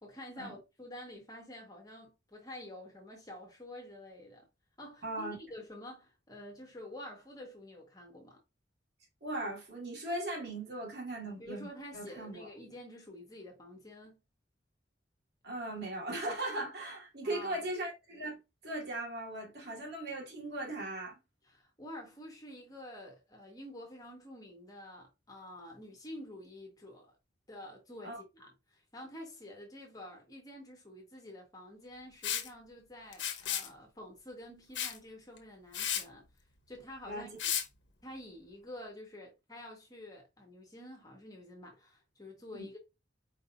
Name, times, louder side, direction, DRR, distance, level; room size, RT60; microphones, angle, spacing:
voice 1, 0.0-4.5 4.8-8.4 11.4-14.2 17.2-17.6 21.4-27.1 27.5-36.2 36.7-37.3 38.0-42.8, left 1 dB, 20° left, 1.6 m, -49 dB
voice 2, 5.0-5.4 9.2-11.7 11.9-12.5 15.4-21.2 28.0-28.2 37.1-37.4 42.5-42.7, right 1 dB, 60° right, 2.5 m, -38 dB
Liquid, 32.2-32.5 33.1-33.7 34.7-35.0 35.4-35.5 35.7-36.0 37.4-37.6, left 9 dB, 75° left, 1.0 m, -33 dB
4.9 x 3.9 x 2.7 m
head